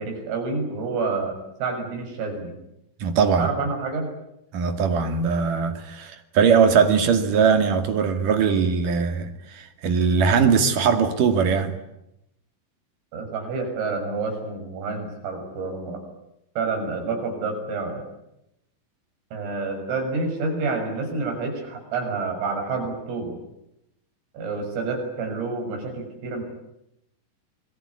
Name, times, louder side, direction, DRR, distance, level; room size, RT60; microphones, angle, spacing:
voice 1, 0.0-2.6 3.4-4.1 13.1-16.0 16.6-18.0 19.3-23.4 24.3-26.4, right 3 dB, 85° right, 9.3 m, -28 dB
voice 2, 3.0-3.5 4.5-11.7, right 6 dB, 50° right, 3.3 m, -20 dB
26.5 x 22.0 x 9.8 m
omnidirectional pair, 5.8 m